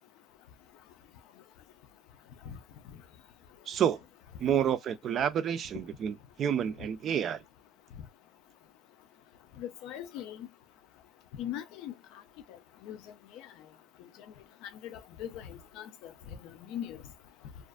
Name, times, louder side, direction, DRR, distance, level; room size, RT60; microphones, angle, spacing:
voice 1, 3.7-4.0 4.4-7.4, right 9 dB, 40° right, 0.3 m, -29 dB
voice 2, 9.6-10.5 11.4-11.9 12.8-13.0 14.6-16.4 16.7-17.0, left 10 dB, 70° left, 0.5 m, -40 dB
2.4 x 2.4 x 2.2 m
cardioid pair, 155°, 0 cm